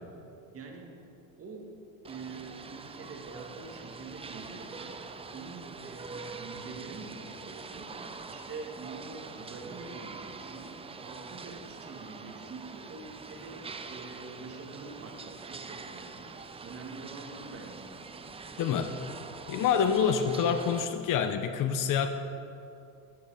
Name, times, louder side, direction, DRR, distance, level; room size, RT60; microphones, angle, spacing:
voice 1, 0.5-0.9 1.4-1.7 2.1-5.0 5.3-8.0 8.3-16.3 16.6-18.0, right 3 dB, 35° right, 1 dB, 2.0 m, -45 dB
sound 1, 2.0-20.9, right 4 dB, 15° right, 0.5 m, -44 dB
voice 2, 18.6-19.0 19.5-22.1, left 7 dB, 50° left, 9 dB, 0.8 m, -27 dB
11.5 x 9.2 x 5.0 m, 2.7 s
supercardioid pair, 105°, 41 cm